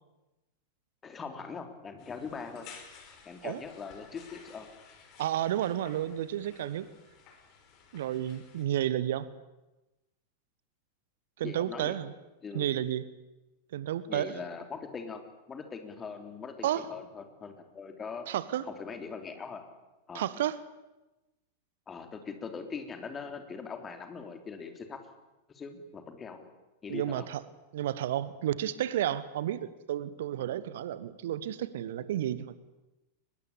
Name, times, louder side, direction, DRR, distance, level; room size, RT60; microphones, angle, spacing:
voice 1, 1.0-2.7 3.2-4.7 11.4-11.9 12.4-12.7 14.1-15.2 15.5-18.3 18.6-19.6 20.1-20.3 21.9-25.0 25.5-26.4 26.8-27.3, left 5 dB, 20° left, 6 dB, 3.4 m, -41 dB
sound 1, 2.0-8.6, left 6 dB, 40° left, 5.1 m, -54 dB
voice 2, 5.2-6.9 7.9-9.3 11.4-12.1 12.5-13.0 13.7-14.4 16.6-16.9 18.3-18.6 20.1-20.6 26.9-27.4 27.7-32.6, right 12 dB, 55° right, 17 dB, 1.1 m, -31 dB
24.0 x 20.5 x 8.7 m, 1.0 s
figure-of-eight pair, 90°, 0 cm